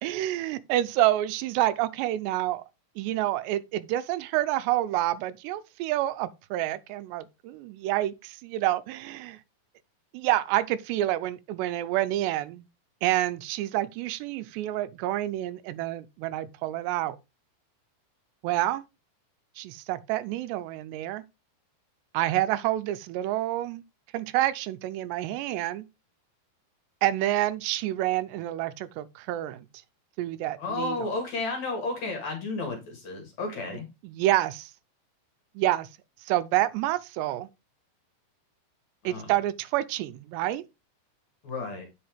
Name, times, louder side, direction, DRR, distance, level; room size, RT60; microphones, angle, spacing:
voice 1, 0.0-2.6 3.0-9.4 10.1-12.7 13.0-17.2 18.4-18.8 19.6-21.2 22.1-23.8 24.1-25.9 27.0-29.7 30.2-31.1 34.0-34.7 35.6-35.9 36.2-37.5 39.0-40.7, right 14 dB, 85° right, 2.7 m, -28 dB
voice 2, 30.6-33.9 39.0-39.3 41.4-41.9, left 3 dB, 50° left, 2.5 m, -32 dB
8.7 x 5.5 x 3.4 m
omnidirectional pair, 5.0 m